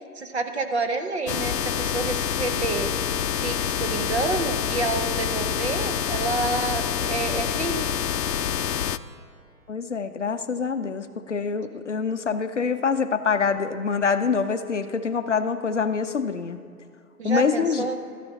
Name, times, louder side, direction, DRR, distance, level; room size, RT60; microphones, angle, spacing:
voice 1, 0.1-2.9 3.4-7.9 17.2-18.0, right 3 dB, 40° right, 6 dB, 1.0 m, -28 dB
sound 1, 1.3-9.0, left 9 dB, 85° left, 0.7 m, -27 dB
voice 2, 9.7-16.6 17.2-17.9, left 5 dB, 50° left, 9 dB, 0.6 m, -25 dB
13.0 x 10.5 x 4.0 m, 2.5 s
hypercardioid pair, 165°, 47 cm